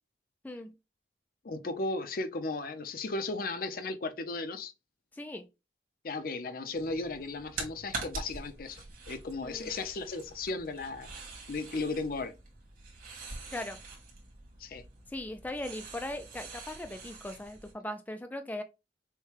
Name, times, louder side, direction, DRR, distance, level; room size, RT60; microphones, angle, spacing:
voice 1, 0.4-0.7 5.1-5.5 9.4-9.7 13.5-13.8 15.1-18.6, left 1 dB, 10° left, 0.3 m, -39 dB
voice 2, 1.4-4.7 6.0-11.1 11.5-12.3 14.6-14.8, left 3 dB, 55° left, 0.6 m, -35 dB
sound 1, 6.7-17.7, right 3 dB, 50° right, 2.2 m, -45 dB
6.3 x 2.2 x 3.2 m
head